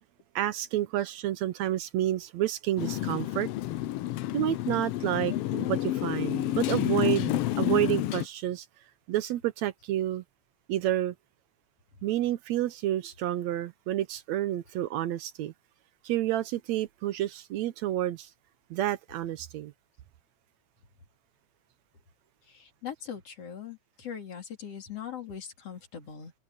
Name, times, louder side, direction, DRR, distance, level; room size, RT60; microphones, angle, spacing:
voice 1, 0.4-3.5 4.3-8.7 9.1-10.2 10.7-11.2 12.0-15.5 16.0-18.3 18.7-19.7, right 13 dB, 75° right, 1.9 m, -29 dB
Motorcycle, 2.8-8.3, left 14 dB, 90° left, 1.3 m, -29 dB
voice 2, 22.5-26.3, left 8 dB, 55° left, 3.9 m, -41 dB
omnidirectional pair, 3.4 m